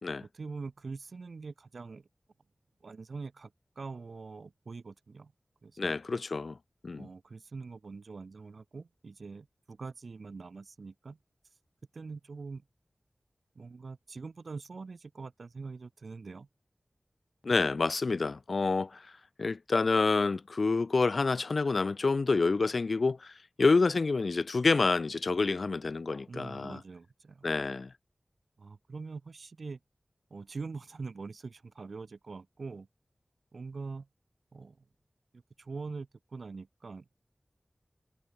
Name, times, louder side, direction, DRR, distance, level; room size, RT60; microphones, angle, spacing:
voice 1, 0.2-2.1 2.8-5.3 5.6-5.9 7.0-11.2 11.9-12.6 13.6-16.5 26.3-27.5 28.6-29.8 30.3-32.9 33.5-34.1 34.5-34.8 35.3-37.1, right 4 dB, 90° right, 7.5 m, -43 dB
voice 2, 5.8-6.5 6.8-7.1 17.4-18.9 19.4-23.2 23.6-26.8 27.4-27.9, left 3 dB, 75° left, 1.3 m, -28 dB
wide cardioid pair, 60°, 0 cm